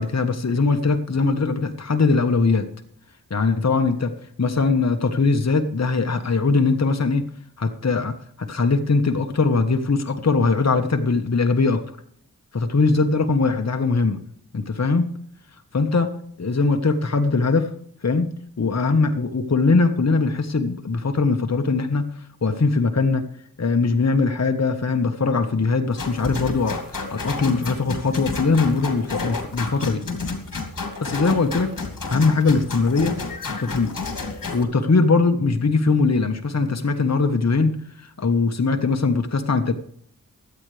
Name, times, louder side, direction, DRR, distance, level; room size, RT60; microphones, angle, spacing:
voice 1, 0.0-2.7 3.3-4.1 4.4-7.2 7.6-11.8 12.5-14.2 14.5-15.0 15.7-16.1 16.4-17.7 18.0-18.3 18.6-23.2 23.6-30.0 31.0-31.7 32.1-33.2 33.6-33.9 34.5-39.7, left 4 dB, 50° left, 6 dB, 1.4 m, -21 dB
sound 1, 26.0-34.6, left 4 dB, 70° left, 3.0 m, -31 dB
23.0 x 9.1 x 3.4 m, 0.63 s
cardioid pair, 50°, 34 cm